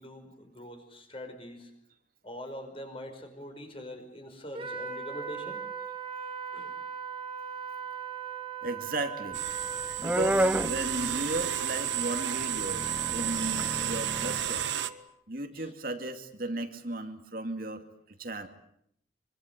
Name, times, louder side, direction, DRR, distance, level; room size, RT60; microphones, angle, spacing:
voice 1, 0.0-1.7 2.2-5.6 6.5-6.7 15.5-15.7, equal, 30° left, 6 dB, 5.4 m, -43 dB
Wind instrument woodwind instrument, 4.5-15.0, right 7 dB, 25° right, 3.5 m, -39 dB
voice 2, 8.6-9.4 10.0-12.9 13.1-14.7 15.3-17.9 18.2-18.5, right 2 dB, 50° right, 6 dB, 2.5 m, -35 dB
sound 1, 9.3-14.9, right 11 dB, 70° right, 1.4 m, -32 dB
sound 2, 9.4-11.9 12.2-14.6, equal, 10° right, 1.0 m, -31 dB
26.0 x 25.0 x 8.3 m, 0.71 s
head